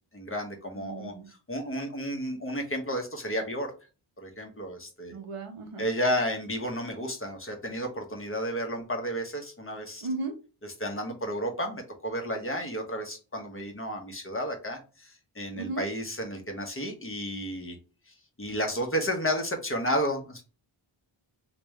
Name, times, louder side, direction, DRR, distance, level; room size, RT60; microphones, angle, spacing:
voice 1, 0.1-3.7 4.2-5.1 5.8-10.0 10.6-17.8 18.1-20.4, equal, 25° left, 3 dB, 1.2 m, -32 dB
voice 2, 0.7-1.3 5.1-5.8 10.0-10.3 15.5-15.8, right 3 dB, 85° right, 5 dB, 0.9 m, -35 dB
3.4 x 3.0 x 3.2 m, 0.34 s
wide cardioid pair, 40°, 50 cm